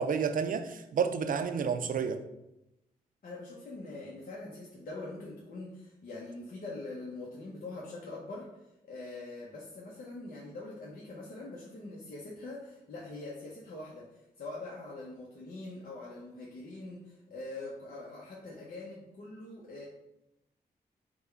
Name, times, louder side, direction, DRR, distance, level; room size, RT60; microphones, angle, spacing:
voice 1, 0.0-2.2, right 6 dB, 55° right, 9 dB, 0.4 m, -30 dB
voice 2, 3.2-19.9, left 2 dB, 60° left, -4 dB, 0.8 m, -43 dB
3.5 x 2.3 x 4.3 m, 0.89 s
supercardioid pair, 50°, 17 cm